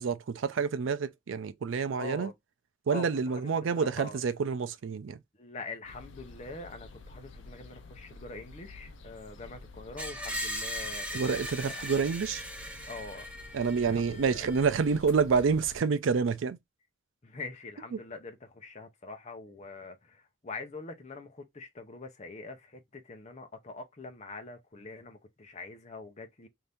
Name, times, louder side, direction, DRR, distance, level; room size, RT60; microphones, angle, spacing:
voice 1, 0.0-2.3 2.9-5.2 11.1-12.4 13.5-16.6 17.9-18.0, right 5 dB, 75° right, 0.4 m, -28 dB
voice 2, 2.0-2.3 2.9-3.4 3.8-4.2 5.4-11.9 12.9-13.3 13.8-14.4 17.2-26.5, left 3 dB, 35° left, 0.7 m, -44 dB
sound 1, 5.8-15.8, left 3 dB, 70° left, 0.6 m, -50 dB
Screech, 10.0-14.9, equal, 5° right, 0.5 m, -39 dB
2.7 x 2.6 x 3.4 m
head